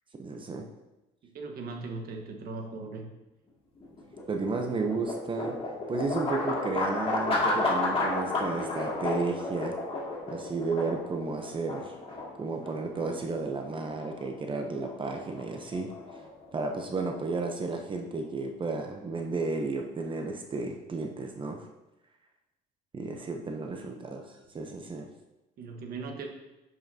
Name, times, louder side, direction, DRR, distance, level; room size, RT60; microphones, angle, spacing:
voice 1, 0.2-0.7 4.3-5.6 5.9-9.7 10.3-11.9 12.4-15.9 16.5-21.7 22.9-25.1, right 3 dB, 30° right, 3 dB, 0.8 m, -33 dB
voice 2, 1.3-3.0 23.8-23.9 25.6-26.3, right 3 dB, 60° right, 3 dB, 1.3 m, -38 dB
sound 1, 3.8-17.9, left 2 dB, 35° left, 2.3 m, -33 dB
8.9 x 5.7 x 2.8 m, 0.97 s
cardioid pair, 110°, 17 cm